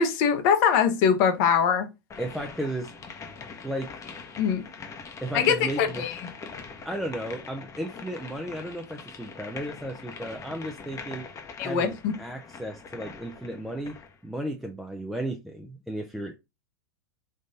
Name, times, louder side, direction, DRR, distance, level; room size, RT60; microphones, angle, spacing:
voice 1, 0.0-1.9 4.4-4.6 5.3-6.2 11.6-12.1, left 7 dB, 55° left, 1.0 m, -22 dB
sound 1, 2.1-14.2, left 5 dB, 25° left, 0.9 m, -43 dB
voice 2, 2.2-2.9 3.6-4.0 5.2-6.0 6.8-11.3 11.6-16.4, right 1 dB, ahead, 0.6 m, -34 dB
3.7 x 2.5 x 4.0 m
hypercardioid pair, 105°, 12 cm